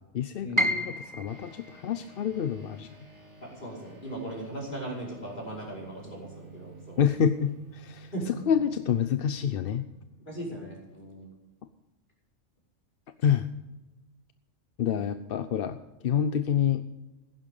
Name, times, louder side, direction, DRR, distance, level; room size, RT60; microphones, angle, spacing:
voice 1, 0.1-2.9 7.0-8.1 8.5-9.8 13.2-13.5 14.8-15.8 16.0-16.8, left 8 dB, 55° left, 10 dB, 0.8 m, -27 dB
Piano, 0.6-6.5 6.8-8.0 8.4-8.5 9.2-9.5, equal, 15° right, 1.1 m, -35 dB
sound 1, 1.3-11.0, right 3 dB, 65° right, 4.2 m, -51 dB
voice 2, 3.4-7.0 7.3-7.4 8.1-8.3 10.3-11.3, right 1 dB, 40° left, -4 dB, 5.4 m, -38 dB
15.5 x 11.5 x 5.4 m, 1.1 s
omnidirectional pair, 1.3 m